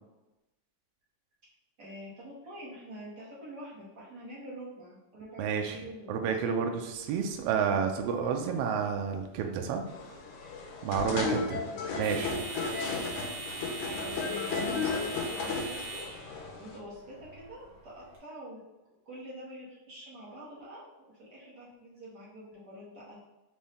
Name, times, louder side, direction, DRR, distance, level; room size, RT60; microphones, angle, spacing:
voice 1, 1.8-6.4 7.1-7.2 11.2-12.3 12.8-13.1 13.8-18.6 19.0-20.8 21.2-23.2, equal, 45° right, -8 dB, 1.5 m, -46 dB
voice 2, 5.4-5.8 6.1-9.8 10.8-11.6 11.9-12.4, right 6 dB, 90° right, 4 dB, 1.4 m, -30 dB
sound 1, 6.8-18.2, right 2 dB, 60° right, 2.0 m, -44 dB
sound 2, 9.9-16.8, left 4 dB, 85° left, 2.2 m, -34 dB
5.3 x 2.6 x 3.5 m, 1.0 s
omnidirectional pair, 3.3 m